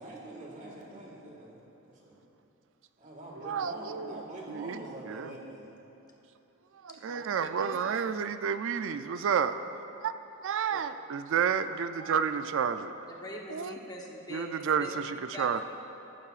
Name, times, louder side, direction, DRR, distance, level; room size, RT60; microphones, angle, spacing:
voice 1, 0.0-2.2 3.0-5.8, right 1 dB, 35° right, -2 dB, 1.8 m, -44 dB
voice 2, 3.4-4.1 4.5-4.8 5.1-5.3 6.8-9.6 10.0-10.1 10.4-12.9 13.5-13.7 14.3-15.6, right 7 dB, 60° right, 10 dB, 0.4 m, -30 dB
voice 3, 6.9-7.9 10.7-10.8 13.1-14.9 15.3-15.6, left 1 dB, 20° left, -1 dB, 1.1 m, -44 dB
13.5 x 12.5 x 2.5 m, 3.0 s
head